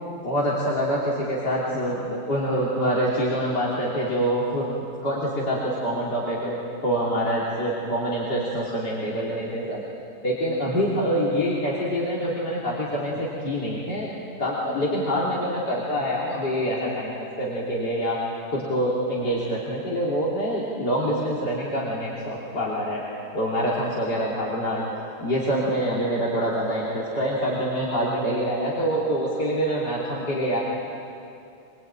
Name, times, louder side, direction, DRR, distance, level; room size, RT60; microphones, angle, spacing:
voice 1, 0.2-4.6 5.0-9.8 10.2-14.1 14.4-18.2 18.5-23.0 23.3-24.8 25.2-30.6, equal, 80° left, -6 dB, 3.9 m, -25 dB
26.0 x 22.0 x 9.0 m, 2.6 s
omnidirectional pair, 1.8 m